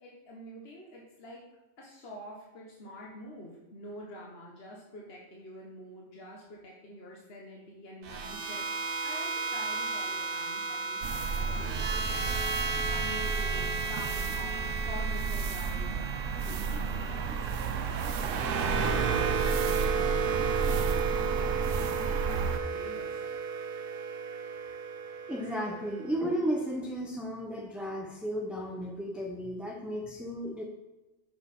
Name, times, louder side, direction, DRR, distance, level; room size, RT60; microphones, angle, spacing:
voice 1, 0.0-1.4 1.8-16.0 16.3-20.0 20.4-23.2, left 1 dB, 55° left, -3 dB, 1.5 m, -47 dB
sound 1, 8.0-26.2, right 5 dB, 55° right, 0.8 m, -34 dB
sound 2, 11.0-22.6, right 5 dB, 80° right, 1.0 m, -32 dB
voice 2, 25.3-30.6, equal, ahead, 0 dB, 0.6 m, -34 dB
6.5 x 6.3 x 5.4 m, 1.1 s
omnidirectional pair, 1.3 m